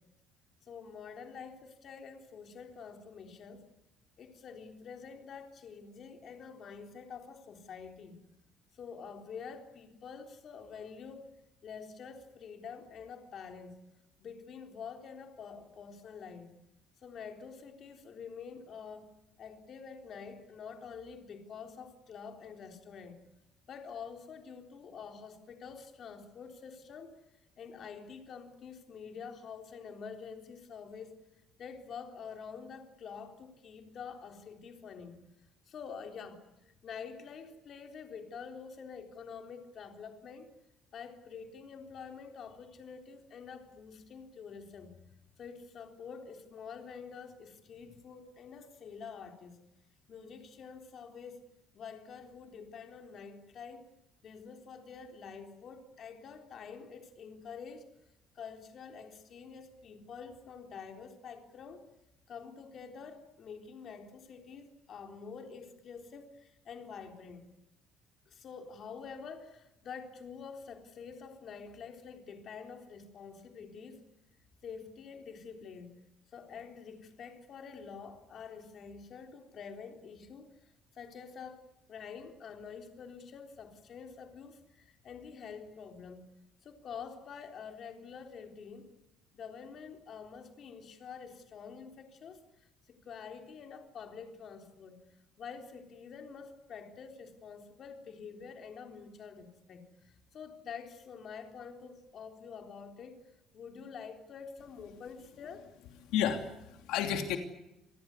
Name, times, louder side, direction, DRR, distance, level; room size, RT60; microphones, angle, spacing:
voice 1, 0.6-3.6 4.2-8.2 8.7-11.3 11.6-13.8 14.2-16.5 17.0-19.1 19.4-23.2 23.7-27.2 27.6-31.2 31.6-35.2 35.7-36.4 36.7-40.5 40.9-44.9 45.4-49.6 50.1-51.5 51.7-53.9 54.2-57.9 58.4-61.9 62.3-67.5 68.3-74.0 74.6-75.9 76.3-86.2 86.6-88.9 89.3-92.4 92.9-95.0 95.4-105.7, left 6 dB, 40° left, 5 dB, 3.8 m, -47 dB
voice 2, 106.1-107.4, left 9 dB, 80° left, 6 dB, 2.8 m, -31 dB
27.5 x 19.0 x 9.7 m, 0.92 s
cardioid pair, 165°, 0 cm